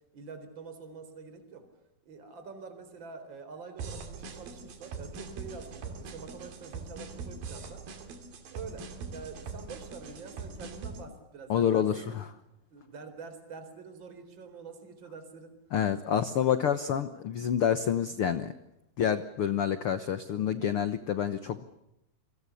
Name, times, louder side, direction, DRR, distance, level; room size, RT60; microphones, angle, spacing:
voice 1, 0.1-1.7 2.1-7.9 8.5-12.2 12.7-15.6, right 5 dB, 30° right, 8 dB, 4.4 m, -46 dB
sound 1, 3.8-11.1, right 4 dB, 75° right, 4.5 m, -42 dB
voice 2, 11.5-12.3 15.7-18.5 19.0-21.6, left 8 dB, 80° left, 11 dB, 1.2 m, -28 dB
29.5 x 24.0 x 7.1 m, 0.83 s
omnidirectional pair, 4.2 m